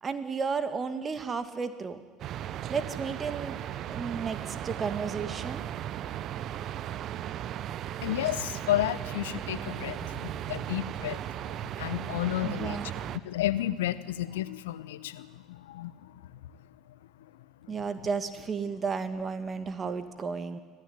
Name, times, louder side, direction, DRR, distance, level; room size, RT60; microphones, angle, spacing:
voice 1, 0.0-2.0 2.7-3.6 3.9-5.7 12.4-12.9 17.7-20.6, right 5 dB, 30° right, 10 dB, 2.2 m, -33 dB
sound 1, 2.2-13.2, right 11 dB, 50° right, 0.9 m, -36 dB
voice 2, 8.0-16.5 17.6-17.8, left 13 dB, 75° left, 17 dB, 0.8 m, -32 dB
25.0 x 16.0 x 9.8 m, 1.4 s
figure-of-eight pair, 65°, 0 cm